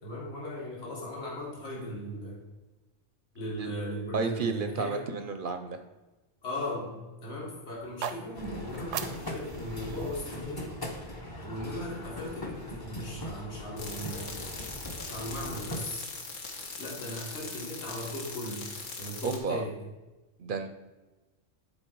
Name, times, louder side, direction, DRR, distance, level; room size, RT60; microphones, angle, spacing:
voice 1, 0.0-2.4 3.3-5.0 6.4-10.8 11.4-14.3 15.0-16.1 16.8-18.7 18.9-19.8, left 1 dB, 55° left, -3 dB, 2.1 m, -38 dB
voice 2, 4.1-5.8 19.2-19.6 20.4-20.7, right 4 dB, 55° right, 8 dB, 0.7 m, -32 dB
sound 1, 7.8-11.9, right 9 dB, 80° right, 0.9 m, -42 dB
sound 2, 8.4-15.8, left 1 dB, 20° left, 0.8 m, -40 dB
sound 3, 13.8-19.4, left 4 dB, 85° left, 1.6 m, -41 dB
10.5 x 4.2 x 4.5 m, 1.1 s
omnidirectional pair, 1.3 m